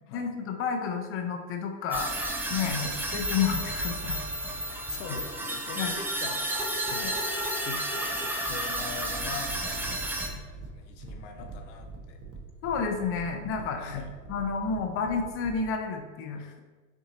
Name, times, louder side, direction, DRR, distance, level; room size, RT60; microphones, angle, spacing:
voice 1, 0.1-2.1 2.5-2.8 3.1-4.2 5.8-5.9 7.0-7.1 12.6-13.9 14.3-16.4, left 6 dB, 35° left, 5 dB, 0.6 m, -30 dB
sound 1, 1.9-10.3, right 1 dB, 5° right, 0.4 m, -32 dB
voice 2, 2.6-3.0 4.7-12.2 13.8-14.1 16.4-16.6, left 5 dB, 65° left, 5 dB, 0.8 m, -41 dB
sound 2, 9.0-15.7, right 3 dB, 40° right, 1.0 m, -44 dB
5.9 x 2.7 x 2.7 m, 1.3 s
hypercardioid pair, 100°, 39 cm